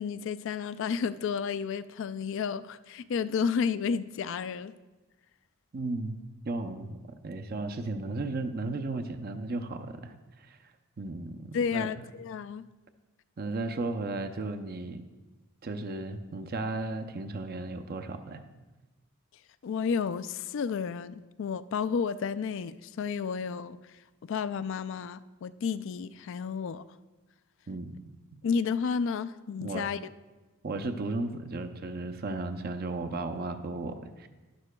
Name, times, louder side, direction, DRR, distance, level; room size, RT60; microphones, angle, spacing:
voice 1, 0.0-4.7 11.5-12.7 19.6-26.8 28.4-30.0, left 6 dB, 60° left, 0.3 m, -31 dB
voice 2, 5.7-6.2 6.4-10.7 11.0-11.9 13.4-15.0 15.6-18.4 27.7-27.9 29.6-29.9 30.6-34.3, right 2 dB, 45° right, 0.5 m, -35 dB
11.5 x 11.5 x 2.2 m
head